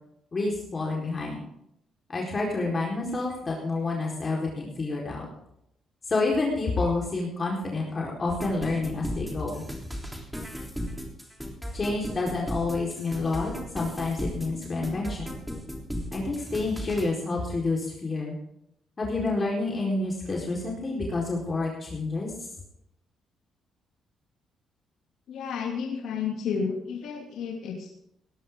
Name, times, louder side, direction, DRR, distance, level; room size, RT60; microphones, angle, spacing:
voice 1, 0.3-1.4 2.1-5.3 6.1-9.6 11.7-15.3 16.1-18.4 19.0-22.3, left 3 dB, 35° left, -2 dB, 4.4 m, -29 dB
sound 1, 8.3-17.1, equal, 5° right, 3.5 m, -36 dB
voice 2, 25.3-27.9, left 6 dB, 75° left, 0 dB, 2.7 m, -31 dB
19.0 x 12.5 x 3.8 m, 0.76 s
cardioid pair, 90°, 0 cm